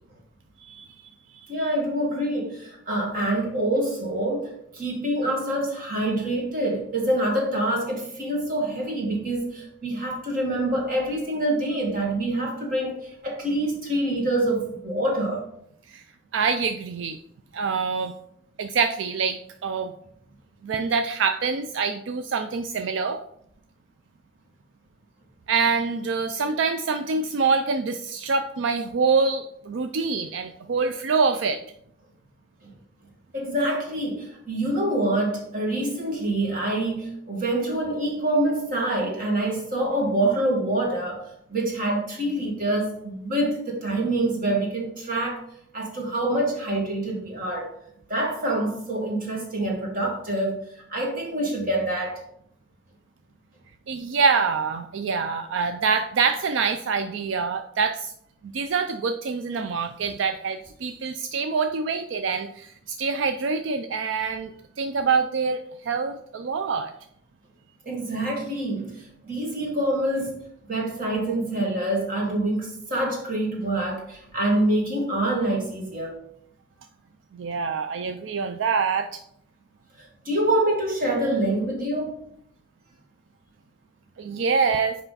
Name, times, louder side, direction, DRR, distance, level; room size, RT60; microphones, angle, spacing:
voice 1, 1.5-15.5 32.6-32.7 33.3-45.4 45.7-47.7 48.1-52.2 67.9-76.1 80.0-82.2, right 1 dB, 50° right, -1 dB, 1.9 m, -26 dB
voice 2, 16.3-17.2 17.5-18.1 18.6-19.9 20.6-23.2 25.5-31.6 53.9-58.1 58.4-64.5 64.8-66.9 77.3-79.2 84.2-85.0, right 5 dB, 80° right, 8 dB, 0.4 m, -25 dB
5.6 x 4.9 x 4.0 m, 0.70 s
head